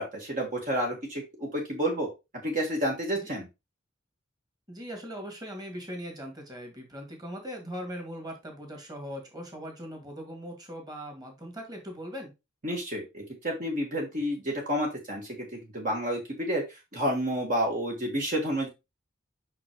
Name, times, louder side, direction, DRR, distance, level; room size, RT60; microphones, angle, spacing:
voice 1, 0.0-2.1 2.4-3.5 12.6-18.7, equal, 45° right, 0 dB, 1.7 m, -30 dB
voice 2, 4.7-12.3, equal, 20° right, 2 dB, 2.2 m, -40 dB
5.9 x 5.8 x 3.1 m, 0.24 s
head